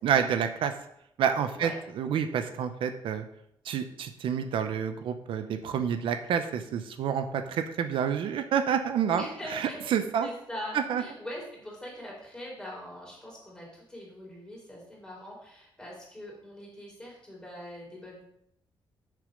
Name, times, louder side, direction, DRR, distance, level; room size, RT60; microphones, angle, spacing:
voice 1, 0.0-0.7 1.2-1.7 2.0-3.2 3.6-9.2 9.5-10.3 10.7-11.0, right 8 dB, 80° right, 9 dB, 0.7 m, -28 dB
voice 2, 9.1-18.2, left 1 dB, 10° left, -4 dB, 3.6 m, -42 dB
6.8 x 6.6 x 5.2 m, 0.75 s
cardioid pair, 145°, 9 cm